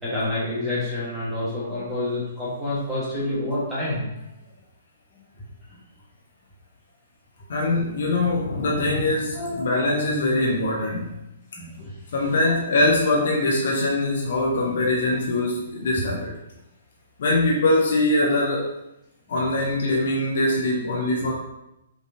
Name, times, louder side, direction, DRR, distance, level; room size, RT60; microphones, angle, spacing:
voice 1, 0.0-4.3 9.3-9.9 11.6-11.9 12.4-12.6, left 1 dB, 5° right, -11 dB, 1.3 m, -28 dB
voice 2, 7.5-11.1 12.1-16.4 17.2-18.7 19.3-21.3, left 2 dB, 55° left, -1 dB, 0.7 m, -22 dB
5.2 x 3.1 x 2.7 m, 0.87 s
figure-of-eight pair, 120°, 0 cm